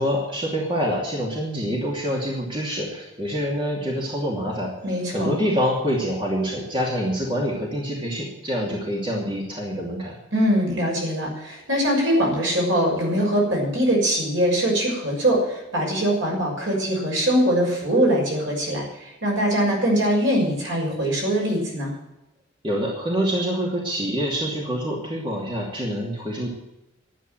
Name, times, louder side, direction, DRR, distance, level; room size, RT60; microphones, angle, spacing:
voice 1, 0.0-4.7 5.1-10.2 22.6-26.5, equal, 25° right, -2 dB, 2.7 m, -26 dB
voice 2, 4.8-5.4 10.3-21.9, equal, 70° right, -2 dB, 6.4 m, -22 dB
12.0 x 9.0 x 9.1 m, 0.94 s
head